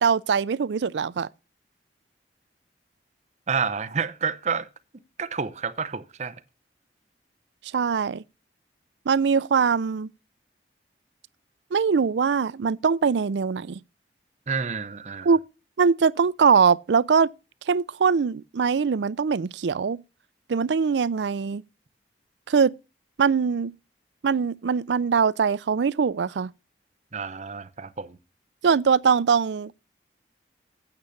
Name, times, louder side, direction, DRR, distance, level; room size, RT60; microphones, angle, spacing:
voice 1, 0.0-1.3 7.7-8.2 9.1-10.1 11.7-13.8 15.2-15.4 15.8-17.3 17.7-20.0 20.5-21.6 22.5-22.7 23.2-23.7 24.2-26.5 28.6-29.7, right 6 dB, 85° right, 0.4 m, -22 dB
voice 2, 3.5-4.7 5.2-6.4 14.5-15.3 27.1-28.2, right 5 dB, 40° right, 0.6 m, -29 dB
8.9 x 6.4 x 7.0 m
head